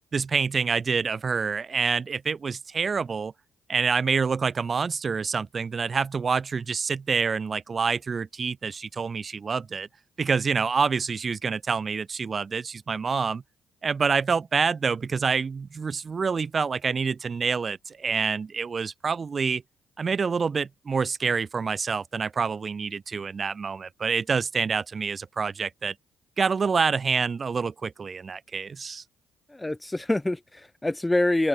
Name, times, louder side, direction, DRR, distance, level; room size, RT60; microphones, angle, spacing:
voice 1, 0.1-3.3 3.7-9.9 10.2-13.4 13.8-19.6 20.0-26.0 26.4-29.0, right 5 dB, 40° right, 5.3 m, -27 dB
voice 2, 29.5-31.5, left 2 dB, 15° left, 0.8 m, -25 dB
open air
hypercardioid pair, 45°, 0 cm